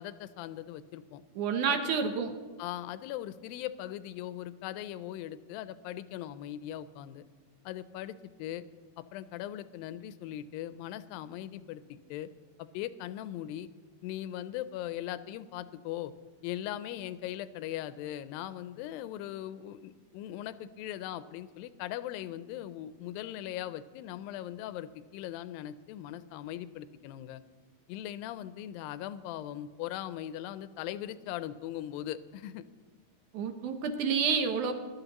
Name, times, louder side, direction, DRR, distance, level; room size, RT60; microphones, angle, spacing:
voice 1, 0.0-1.2 1.7-2.0 2.6-7.2 7.7-8.6 9.0-12.3 12.6-13.7 14.0-16.1 16.4-27.4 27.9-32.6, left 12 dB, 80° left, 14 dB, 2.2 m, -39 dB
voice 2, 1.4-2.3 33.3-34.7, right 6 dB, 75° right, 6 dB, 1.9 m, -29 dB
22.0 x 12.0 x 3.0 m, 1.5 s
omnidirectional pair, 4.3 m